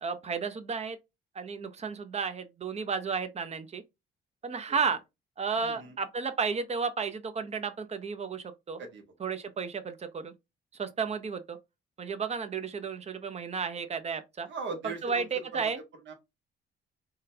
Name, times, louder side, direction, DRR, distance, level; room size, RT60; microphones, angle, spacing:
voice 1, 0.0-1.0 1.3-3.8 4.4-5.0 5.4-8.8 9.2-10.3 10.8-11.6 12.0-14.5 14.8-15.8, right 5 dB, 35° right, 0.6 m, -33 dB
voice 2, 5.6-5.9 8.8-9.0 14.5-15.6 16.1-16.2, right 3 dB, 70° right, 1.0 m, -39 dB
3.7 x 2.2 x 2.7 m
cardioid pair, 90°, 20 cm